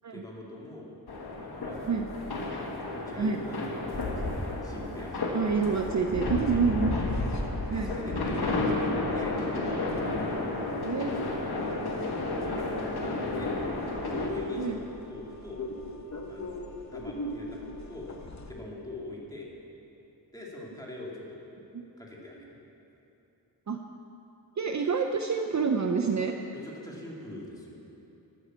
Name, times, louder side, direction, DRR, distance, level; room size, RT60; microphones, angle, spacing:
voice 1, 0.1-0.9 1.5-2.1 2.4-2.5 2.9-3.6 3.9-5.3 6.2-6.8 7.7-9.9 10.3-13.5 14.1-15.6 16.3-18.1 18.5-19.5 20.3-21.4 22.0-22.6 26.1-26.3 26.6-27.8, left 1 dB, 10° left, -3 dB, 2.1 m, -43 dB
sound 1, 1.1-14.3, left 2 dB, 65° left, 1.7 m, -32 dB
voice 2, 5.3-7.0 7.7-7.9 10.8-11.3 14.6-14.8 21.7-21.9 23.7-23.8 24.6-26.3, right 5 dB, 45° right, 4 dB, 0.6 m, -28 dB
sound 2, 5.5-18.5, left 2 dB, 45° left, 1.0 m, -42 dB
12.0 x 8.8 x 7.4 m, 2.9 s
wide cardioid pair, 155°, 40 cm